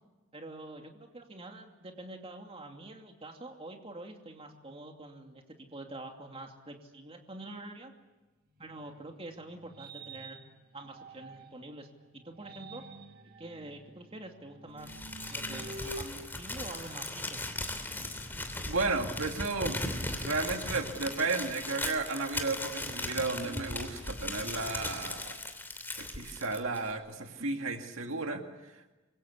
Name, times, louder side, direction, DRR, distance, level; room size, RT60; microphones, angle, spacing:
voice 1, 0.3-7.9 8.6-10.4 10.7-12.8 13.4-15.0 15.3-17.4, right 2 dB, 30° right, 3 dB, 2.6 m, -46 dB
sound 1, 8.6-11.7 12.2-17.4, right 2 dB, 45° right, 2.2 m, -48 dB
Crumpling crinkling, 14.8-26.9, left 2 dB, 10° left, 3.0 m, -38 dB
voice 2, 18.7-19.8 20.1-25.4 26.0-28.4, right 3 dB, 75° right, 4 dB, 2.2 m, -33 dB
26.5 x 23.0 x 8.5 m, 1.1 s
head